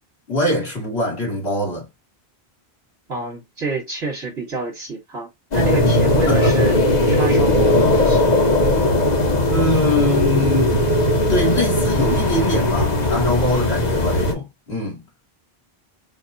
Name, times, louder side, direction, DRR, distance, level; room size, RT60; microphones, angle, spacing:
voice 1, 0.3-1.9 6.3-6.7 9.5-10.8 11.3-15.0, left 1 dB, 75° left, 2.5 m, -23 dB
voice 2, 3.1-6.8 7.1-8.4, right 3 dB, 80° right, 3.7 m, -28 dB
sound 1, 5.5-14.3, left 1 dB, 40° left, 1.2 m, -18 dB
6.9 x 2.3 x 2.6 m
omnidirectional pair, 1.1 m